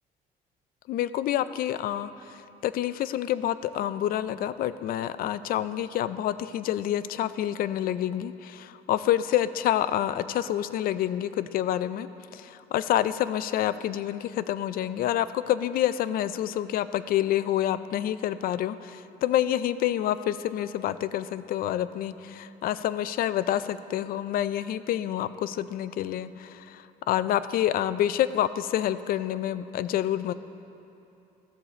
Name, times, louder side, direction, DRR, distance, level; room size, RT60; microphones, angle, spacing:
voice 1, 0.9-12.1 12.3-30.3, left 12 dB, 60° left, 15 dB, 0.4 m, -28 dB
14.5 x 6.8 x 4.2 m, 2.9 s
cardioid pair, 110°, 17 cm